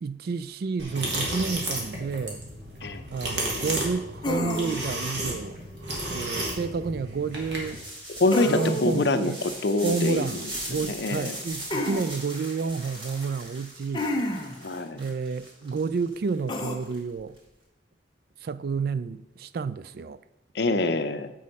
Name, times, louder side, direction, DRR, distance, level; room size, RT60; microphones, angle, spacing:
voice 1, 0.0-2.4 3.1-5.6 6.1-7.8 8.4-9.4 9.8-14.1 15.0-17.4 18.4-20.2, right 5 dB, 60° right, 0.4 m, -30 dB
sound 1, 0.8-7.8, right 1 dB, 85° right, 2.2 m, -33 dB
sound 2, 4.2-5.0 8.3-9.1 11.7-12.1 13.9-14.6 16.5-16.8, left 1 dB, 25° left, 0.8 m, -29 dB
sound 3, 7.5-17.4, right 1 dB, 30° right, 2.4 m, -40 dB
voice 2, 8.2-9.3 9.6-10.3 10.9-11.3 14.6-15.0 20.5-21.3, left 2 dB, 70° left, 0.7 m, -25 dB
7.5 x 6.3 x 5.4 m
head